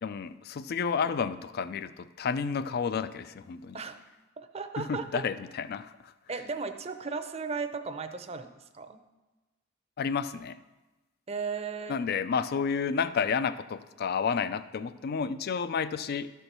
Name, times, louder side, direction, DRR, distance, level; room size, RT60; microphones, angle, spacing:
voice 1, 0.0-3.8 4.8-6.1 10.0-10.6 11.9-16.3, left 6 dB, 50° left, 14 dB, 0.4 m, -31 dB
voice 2, 4.4-5.2 6.3-9.0 11.3-12.0, right 5 dB, 30° right, 8 dB, 0.6 m, -36 dB
12.0 x 4.4 x 6.6 m, 1.1 s
head